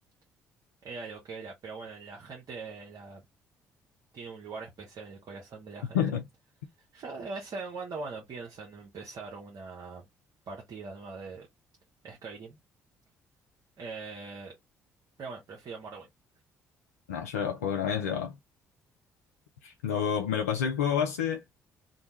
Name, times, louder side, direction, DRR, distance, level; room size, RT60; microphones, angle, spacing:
voice 1, 0.8-3.2 4.1-6.0 6.9-10.1 10.5-11.5 12.0-12.6 13.8-14.6 15.2-16.1, right 4 dB, 55° right, 0.9 m, -41 dB
voice 2, 17.1-18.3 19.6-21.4, left 8 dB, 85° left, 0.4 m, -29 dB
2.6 x 2.2 x 2.9 m
figure-of-eight pair, 45°, 8 cm